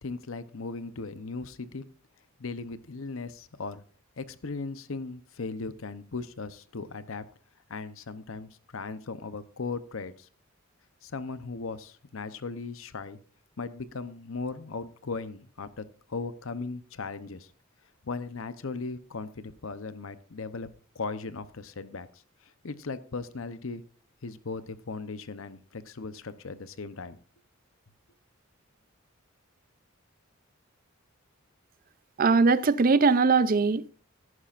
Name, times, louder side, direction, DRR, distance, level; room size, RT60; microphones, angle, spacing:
voice 1, 0.0-1.9 2.4-3.8 4.2-7.2 7.7-10.3 11.0-13.2 13.6-17.5 18.0-20.7 20.9-22.1 22.6-23.8 24.2-27.2, left 4 dB, 70° left, 0.8 m, -37 dB
voice 2, 32.2-33.9, right 4 dB, 40° right, 0.5 m, -21 dB
14.5 x 11.0 x 2.5 m
head